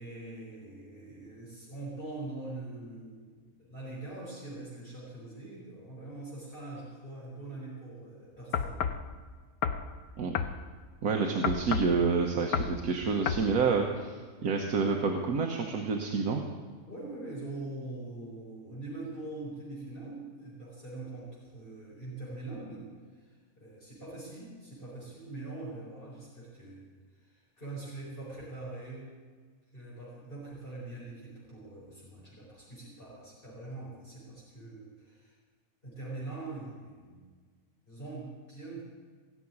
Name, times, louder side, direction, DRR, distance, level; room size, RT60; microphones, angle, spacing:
voice 1, 0.0-9.0 16.8-26.8 27.2-29.1 29.7-35.4 35.8-37.3 37.9-38.8, right 2 dB, 35° left, -7 dB, 4.7 m, -43 dB
sound 1, 8.5-9.0 9.6-9.9 10.3-10.6 11.4-12.0 12.5-12.8 13.3-13.5, left 7 dB, 75° left, 1.3 m, -30 dB
voice 2, 11.0-16.4, right 5 dB, 80° right, 2 dB, 1.6 m, -28 dB
17.5 x 7.4 x 9.8 m, 1.5 s
omnidirectional pair, 1.6 m